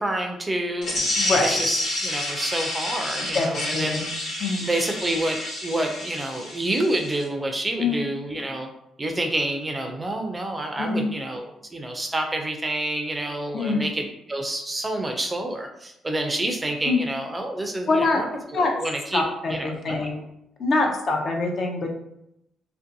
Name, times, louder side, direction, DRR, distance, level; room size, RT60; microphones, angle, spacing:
voice 1, 0.0-4.3 4.6-8.7 9.0-18.3 18.5-19.2 19.5-20.1, right 1 dB, 20° right, 3 dB, 0.4 m, -28 dB
sound 1, 0.8-7.2, left 1 dB, 70° left, 1.2 m, -29 dB
voice 2, 1.2-1.6 3.3-3.5 3.7-4.0 4.4-4.7 7.8-8.1 10.8-11.1 13.5-13.8 16.9-17.0 17.9-18.2 18.5-18.7 19.1-20.2 20.6-21.9, left 3 dB, 55° left, 1 dB, 0.5 m, -24 dB
2.5 x 2.2 x 2.6 m, 0.80 s
cardioid pair, 90°, 0 cm